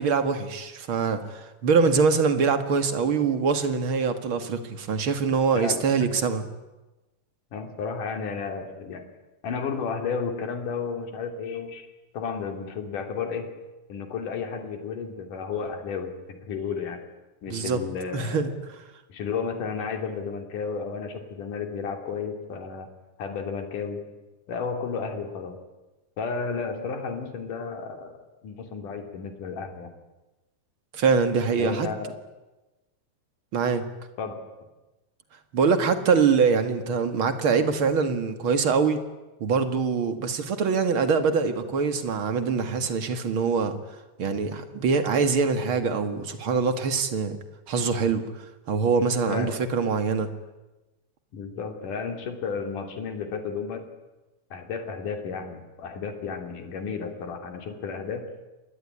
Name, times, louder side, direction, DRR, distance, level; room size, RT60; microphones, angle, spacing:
voice 1, 0.0-6.4 17.5-17.8 18.1-18.5 30.9-31.9 33.5-33.8 35.5-39.0 39.4-43.8 44.2-47.4 47.7-48.2 48.7-50.3, right 5 dB, 45° right, 9 dB, 2.3 m, -24 dB
voice 2, 5.5-6.1 7.5-9.0 9.4-11.9 12.1-13.6 13.9-17.0 17.4-18.4 19.1-22.9 23.2-24.0 24.5-25.6 26.2-28.2 28.4-29.9 31.6-32.1 34.2-34.4 49.3-49.6 51.3-53.8 54.5-58.3, left 5 dB, 65° left, 6 dB, 4.4 m, -32 dB
27.0 x 21.0 x 10.0 m, 1.1 s
omnidirectional pair, 4.0 m